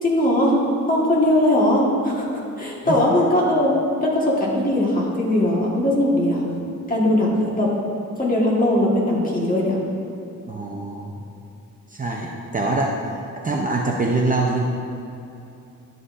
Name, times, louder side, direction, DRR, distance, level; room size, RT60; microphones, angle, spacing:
voice 1, 0.0-0.5 0.9-3.7 4.0-6.4 6.9-7.7 8.2-9.8, left 1 dB, 25° left, -4 dB, 1.5 m, -20 dB
voice 2, 10.5-11.2 11.9-12.9 13.4-14.6, right 3 dB, 25° right, -1 dB, 0.5 m, -24 dB
11.0 x 7.7 x 2.5 m, 2.7 s
wide cardioid pair, 165°, 31 cm